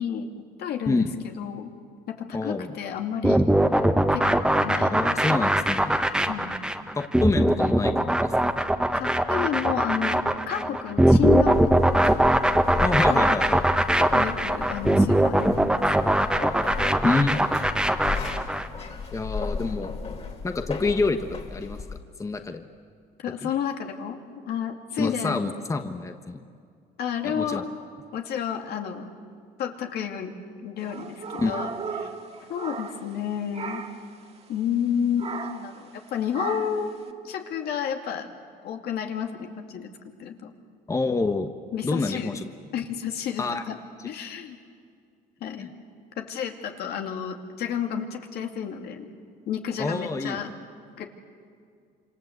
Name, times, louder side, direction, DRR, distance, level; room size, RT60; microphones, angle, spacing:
voice 1, 0.0-1.7 2.1-3.5 4.1-5.0 6.3-6.5 9.0-11.8 13.1-13.4 14.0-15.8 23.2-24.2 24.5-25.4 27.0-27.7 28.1-29.1 29.6-30.3 30.6-31.7 32.0-32.1 32.5-33.8 34.5-36.9 37.2-38.3 38.6-39.9 40.2-40.5 41.7-42.4 42.7-43.8 44.0-44.6 45.4-45.7 46.2-49.1 49.5-50.5 51.0-51.1, left 8 dB, 70° left, 4 dB, 2.6 m, -31 dB
voice 2, 2.3-2.7 4.9-6.0 6.9-8.6 12.8-13.6 17.0-17.4 19.1-19.9 20.4-22.7 23.4-23.5 25.0-26.4 27.3-27.6 31.4-31.5 40.9-41.5 41.8-42.4 43.4-43.6 45.6-45.7 49.8-50.4, left 3 dB, 20° left, 6 dB, 1.3 m, -27 dB
sound 1, 3.2-18.7, right 1 dB, 5° right, 1.3 m, -21 dB
sound 2, 11.3-22.0, left 4 dB, 40° left, 3.6 m, -35 dB
sound 3, 30.8-33.2 33.5-34.1 35.2-35.7 36.3-36.9, right 5 dB, 35° right, 2.0 m, -36 dB
27.0 x 26.5 x 8.1 m, 2.2 s
cardioid pair, 110°, 17 cm